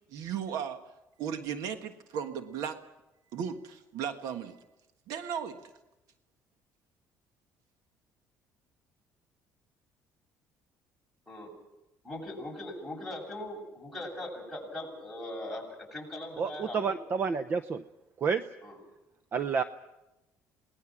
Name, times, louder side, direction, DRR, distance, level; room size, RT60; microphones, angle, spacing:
voice 1, 0.1-0.8 1.2-2.8 3.3-4.6 5.1-5.6, right 8 dB, 75° right, 8 dB, 1.5 m, -35 dB
voice 2, 12.0-17.0 18.6-18.8, left 1 dB, ahead, -2 dB, 7.9 m, -40 dB
voice 3, 16.4-17.8 18.2-18.4 19.3-19.6, right 5 dB, 35° right, 11 dB, 0.8 m, -29 dB
27.5 x 19.5 x 6.2 m, 0.98 s
cardioid pair, 130°, 6 cm